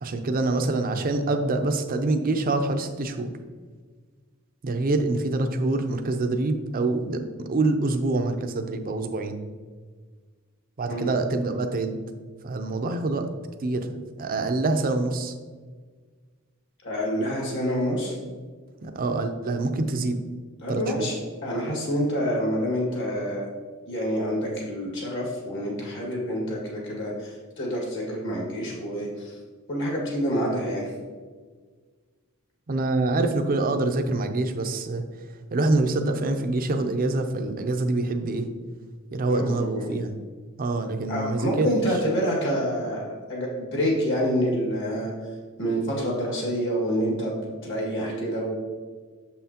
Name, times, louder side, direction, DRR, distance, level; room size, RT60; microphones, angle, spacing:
voice 1, 0.0-3.3 4.6-9.4 10.8-12.0 12.4-13.3 13.6-15.3 18.8-20.2 20.7-21.1 32.7-35.0 35.5-38.5 39.1-40.1 40.6-41.7, right 2 dB, 40° right, 6 dB, 0.5 m, -25 dB
voice 2, 16.8-18.2 20.6-23.5 23.9-29.4 29.7-30.9 39.3-39.9 41.1-45.1 45.6-48.6, equal, 60° left, -3 dB, 1.9 m, -27 dB
6.7 x 5.6 x 2.8 m, 1.5 s
head